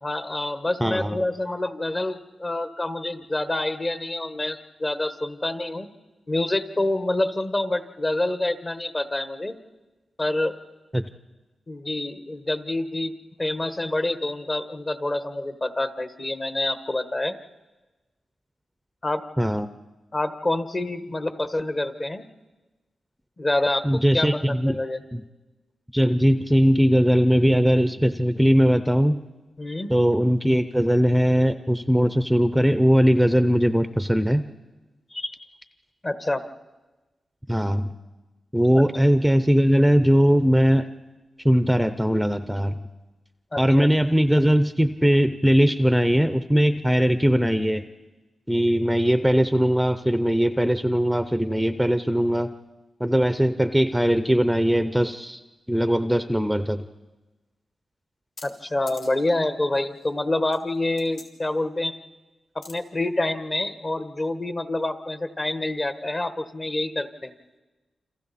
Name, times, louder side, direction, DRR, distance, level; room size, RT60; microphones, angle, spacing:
voice 1, 0.0-5.9 6.3-9.5 10.2-10.6 11.7-13.1 13.4-17.4 19.0-19.2 20.1-22.2 23.4-25.0 29.6-29.9 35.1-35.4 36.0-36.4 38.7-38.8 43.5-43.9 58.4-62.0 62.5-67.3, left 2 dB, 30° left, 10 dB, 1.2 m, -27 dB
voice 2, 0.8-1.2 10.9-11.1 19.4-19.7 23.8-24.8 25.1-25.2 25.9-29.2 29.9-34.4 37.5-37.9 38.5-40.9 41.4-42.7 43.6-47.8 48.5-52.5 53.0-55.4 55.7-56.9, equal, 5° right, 11 dB, 0.6 m, -20 dB
sound 1, 58.4-58.5 58.9-59.3 59.7-60.1 60.5-61.2 62.6-62.7, left 2 dB, 70° left, 3.6 m, -43 dB
29.0 x 26.5 x 4.2 m, 1.2 s
cardioid pair, 95°, 0 cm